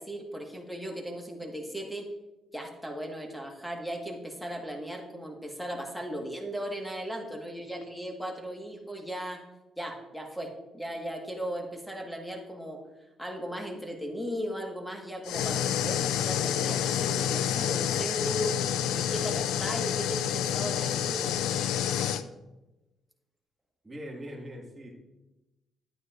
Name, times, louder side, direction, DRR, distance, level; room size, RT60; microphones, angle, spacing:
voice 1, 0.0-2.1 2.5-9.4 9.8-12.8 13.2-18.5 18.9-21.3, equal, ahead, 2 dB, 1.5 m, -37 dB
sound 1, 15.3-22.2, left 10 dB, 90° left, 0.3 m, -28 dB
voice 2, 23.8-24.9, equal, 20° right, -2 dB, 1.9 m, -41 dB
9.5 x 9.2 x 2.5 m, 1.0 s
cardioid pair, 90°, 0 cm